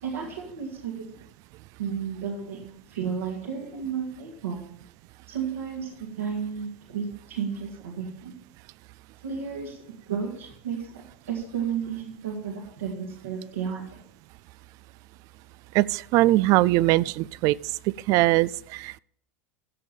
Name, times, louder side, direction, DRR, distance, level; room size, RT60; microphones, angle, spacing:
voice 1, 0.0-1.0 1.8-4.6 5.3-5.9 6.2-8.3 9.2-9.8 10.1-10.8 11.3-13.8, right 7 dB, 80° right, 2.3 m, -32 dB
voice 2, 15.7-17.5 18.1-19.0, right 18 dB, 50° right, 0.3 m, -21 dB
15.0 x 5.3 x 7.1 m
hypercardioid pair, 85°, 7 cm